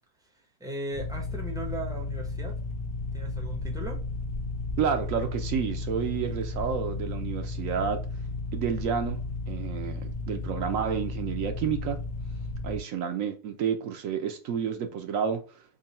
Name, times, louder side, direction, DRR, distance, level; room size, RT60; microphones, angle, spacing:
voice 1, 0.6-2.5 3.1-4.0, right 1 dB, 5° right, 0.5 m, -37 dB
sound 1, 0.9-12.8, left 3 dB, 65° left, 0.6 m, -34 dB
voice 2, 4.8-8.0 8.5-9.2 9.5-12.0 12.6-15.6, right 7 dB, 65° right, 0.9 m, -30 dB
3.8 x 2.2 x 4.0 m
omnidirectional pair, 1.7 m